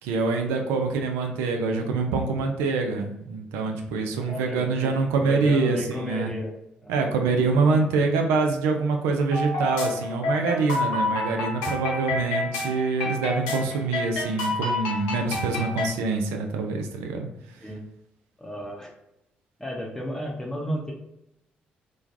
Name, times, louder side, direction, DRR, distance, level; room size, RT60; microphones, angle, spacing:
voice 1, 0.0-6.3 6.9-17.6, right 4 dB, 75° right, 4 dB, 0.4 m, -25 dB
voice 2, 4.2-6.5 6.8-6.9 17.6-17.8 18.4-18.9 19.6-20.9, equal, 10° left, -2 dB, 0.7 m, -33 dB
sound 1, 9.3-15.9, left 2 dB, 85° left, 0.5 m, -28 dB
3.1 x 2.2 x 2.5 m, 0.83 s
hypercardioid pair, 45°, 4 cm